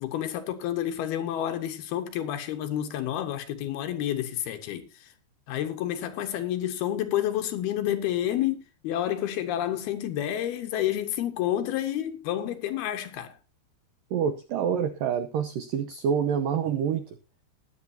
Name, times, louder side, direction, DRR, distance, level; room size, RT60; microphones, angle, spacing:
voice 1, 0.0-5.1 5.5-13.4, left 11 dB, 70° left, 2.8 m, -29 dB
voice 2, 14.1-17.1, right 7 dB, 90° right, 1.9 m, -27 dB
20.0 x 8.5 x 2.7 m
omnidirectional pair, 5.1 m